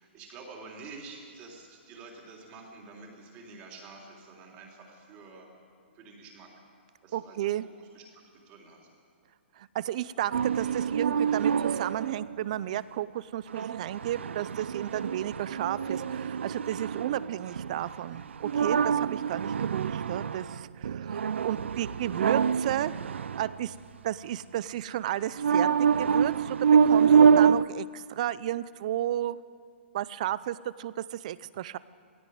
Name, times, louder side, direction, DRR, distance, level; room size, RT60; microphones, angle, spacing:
voice 1, 0.0-5.5 5.9-6.5 7.0-8.9, right 4 dB, 20° right, 0 dB, 3.5 m, -48 dB
voice 2, 7.1-7.7 9.6-23.7 24.0-29.4 29.9-31.8, right 12 dB, 35° right, 18 dB, 0.6 m, -33 dB
sound 1, 10.3-12.4 13.5-23.7 25.4-27.7, right 7 dB, 85° right, 0.5 m, -26 dB
17.5 x 17.0 x 9.4 m, 2.2 s
hypercardioid pair, 165°, 6 cm